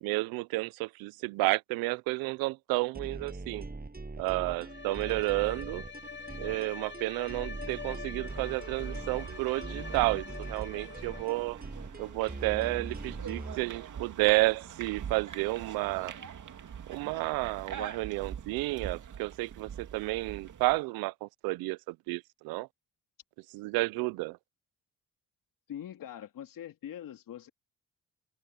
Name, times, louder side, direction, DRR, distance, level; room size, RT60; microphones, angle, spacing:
voice 1, 0.0-3.7 4.2-5.8 6.4-11.6 12.0-16.1 16.9-22.7 23.5-24.4, right 22 dB, 85° right, 0.7 m, -31 dB
sound 1, 2.9-13.6, right 3 dB, 25° right, 7.5 m, -42 dB
Bowed string instrument, 4.5-11.6, left 5 dB, 30° left, 2.7 m, -45 dB
sound 2, 8.3-20.8, right 8 dB, 60° right, 2.3 m, -44 dB
voice 2, 25.7-27.5, left 10 dB, 70° left, 2.8 m, -43 dB
hypercardioid pair, 45°, 35 cm